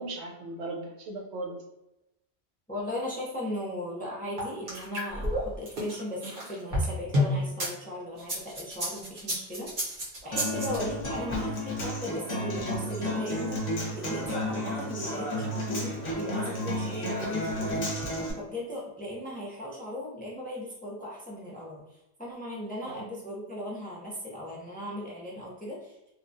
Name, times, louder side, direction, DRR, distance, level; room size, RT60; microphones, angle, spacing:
voice 1, 0.0-1.6 10.2-10.4 22.8-23.1, right 2 dB, 85° right, 1 dB, 0.9 m, -38 dB
voice 2, 2.7-26.0, equal, 10° left, -5 dB, 0.5 m, -38 dB
sound 1, 4.4-7.7 8.2-10.8, left 1 dB, 55° right, 1.0 m, -30 dB
Human voice / Acoustic guitar, 10.3-18.3, left 1 dB, 45° left, 0.7 m, -32 dB
2.9 x 2.2 x 2.6 m, 0.90 s
omnidirectional pair, 1.1 m